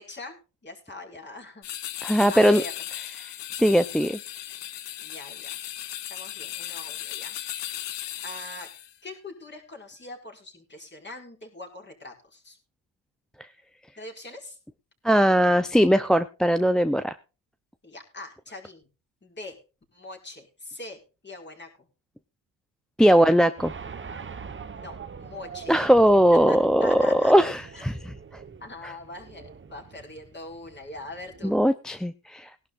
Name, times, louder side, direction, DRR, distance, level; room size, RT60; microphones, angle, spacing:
voice 1, 0.0-1.7 2.3-2.7 5.0-5.6 6.1-7.4 8.2-8.7 9.0-12.6 14.0-14.6 17.8-18.9 19.2-19.6 19.9-21.9 24.7-25.8 26.5-27.3 27.7-27.8 28.6-31.6, left 2 dB, 25° left, 2 dB, 5.0 m, -42 dB
sound 1, 1.6-8.9, left 12 dB, 70° left, 1.3 m, -36 dB
voice 2, 2.0-2.6 3.2-4.2 15.0-17.1 23.0-23.7 25.7-28.0 31.4-32.5, equal, ahead, 11 dB, 0.5 m, -20 dB
sound 2, 23.6-31.7, right 6 dB, 25° right, 1.2 m, -43 dB
20.0 x 11.5 x 2.5 m, 0.31 s
cardioid pair, 100°, 44 cm